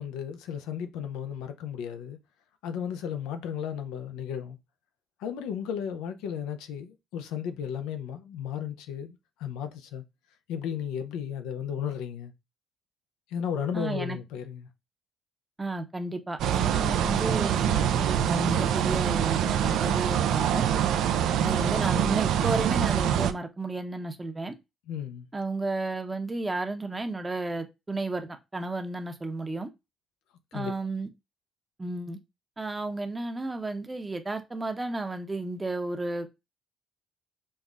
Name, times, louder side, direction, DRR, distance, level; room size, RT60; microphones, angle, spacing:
voice 1, 0.0-2.2 2.6-4.6 5.2-10.0 10.5-12.3 13.3-14.7 21.4-21.7 24.9-25.3 30.5-30.7, left 8 dB, 85° left, 0.4 m, -34 dB
voice 2, 13.7-14.2 15.6-20.6 21.4-24.6 25.3-29.7 30.5-31.1 31.8-32.2 32.6-36.3, right 2 dB, 20° right, 0.7 m, -32 dB
sound 1, 16.4-23.3, right 9 dB, 75° right, 0.3 m, -25 dB
5.3 x 2.1 x 2.3 m
supercardioid pair, 65°, 0 cm